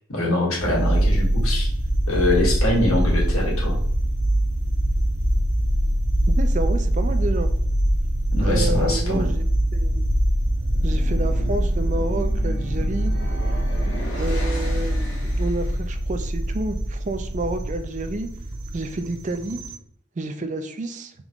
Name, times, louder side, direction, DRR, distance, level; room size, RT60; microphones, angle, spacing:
voice 1, 0.1-1.7 2.1-3.8 8.3-9.3, left 2 dB, 85° left, -2 dB, 1.5 m, -23 dB
sound 1, 0.5-19.8, right 1 dB, 85° right, 0.9 m, -23 dB
voice 2, 6.3-7.5 8.4-9.4 9.7-10.1 10.8-13.1 14.2-18.3 18.7-19.6 20.2-21.1, right 2 dB, 35° right, 8 dB, 0.4 m, -29 dB
sound 2, 10.4-15.8, equal, 60° left, 1.1 m, -36 dB
3.7 x 3.0 x 3.5 m, 0.67 s
head